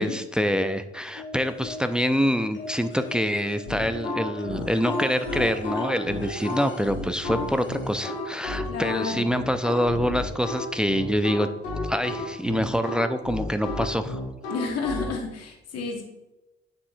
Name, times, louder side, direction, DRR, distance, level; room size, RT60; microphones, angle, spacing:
voice 1, 0.0-11.5 11.9-14.2, equal, 5° right, 10 dB, 0.5 m, -26 dB
sound 1, 1.1-2.1 2.5-8.2 9.4-9.5 9.9-10.0, left 1 dB, 35° left, 2.0 m, -39 dB
sound 2, 3.7-15.1, left 2 dB, 80° left, 1.1 m, -32 dB
voice 2, 8.7-9.2 14.5-16.0, left 4 dB, 55° left, 2 dB, 1.5 m, -30 dB
8.6 x 6.9 x 2.6 m, 0.99 s
figure-of-eight pair, 45°, 31 cm